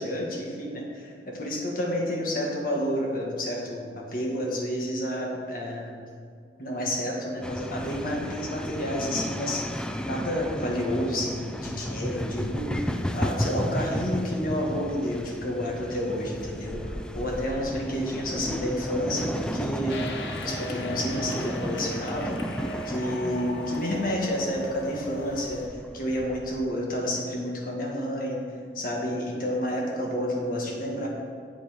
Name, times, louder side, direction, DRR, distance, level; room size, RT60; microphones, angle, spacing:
voice 1, 0.0-6.0 6.6-9.7 10.0-20.0 20.4-22.4 22.9-28.5 28.8-31.1, equal, 50° left, -1 dB, 1.8 m, -30 dB
sound 1, 7.4-26.7, equal, 5° left, 0.4 m, -34 dB
sound 2, 19.9-25.7, equal, 75° left, 0.9 m, -38 dB
8.4 x 7.6 x 5.2 m, 2.3 s
head